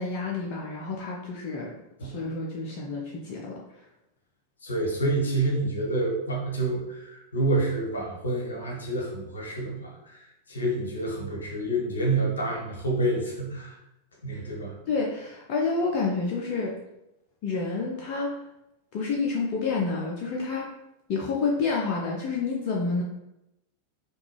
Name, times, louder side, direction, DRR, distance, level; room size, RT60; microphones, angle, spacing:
voice 1, 0.0-1.7 2.0-3.6 14.9-16.8 17.4-18.4 18.9-20.7 21.1-23.0, left 4 dB, 40° left, -2 dB, 0.5 m, -29 dB
voice 2, 4.6-13.8 14.2-14.8, right 2 dB, 70° left, -1 dB, 0.9 m, -28 dB
3.4 x 2.3 x 3.1 m, 0.88 s
figure-of-eight pair, 90°, 0 cm